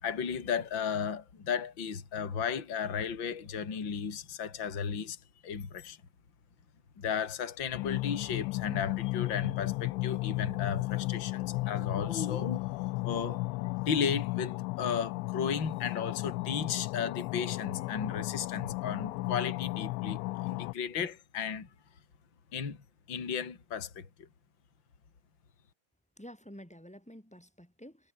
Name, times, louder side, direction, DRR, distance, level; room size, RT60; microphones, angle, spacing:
voice 1, 0.0-5.2 5.4-6.0 7.0-12.7 13.0-13.4 13.9-21.7 22.5-24.3, left 7 dB, 25° left, 3.4 m, -34 dB
sound 1, 7.7-20.7, left 22 dB, 90° left, 3.1 m, -34 dB
voice 2, 26.2-28.1, equal, ahead, 5.5 m, -50 dB
omnidirectional pair, 5.4 m